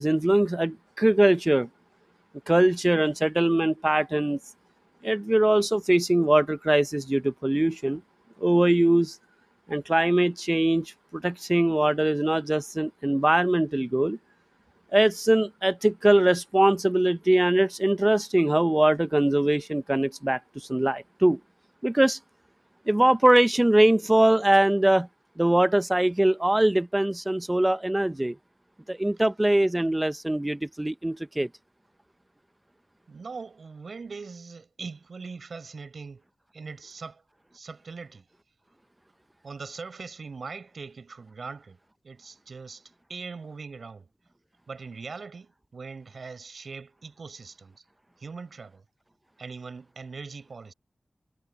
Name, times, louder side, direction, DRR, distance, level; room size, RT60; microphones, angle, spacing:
voice 1, 0.0-1.7 2.5-4.4 5.0-8.0 8.4-9.2 9.7-14.2 14.9-21.4 21.8-22.2 22.9-25.1 25.4-28.4 28.9-31.5, right 1 dB, 20° right, 0.8 m, -22 dB
voice 2, 33.1-36.2 36.5-37.2 37.5-38.3 39.4-44.1 44.7-47.8 48.2-48.8 49.4-50.7, right 4 dB, 80° right, 6.9 m, -41 dB
cardioid pair, 55°, 0 cm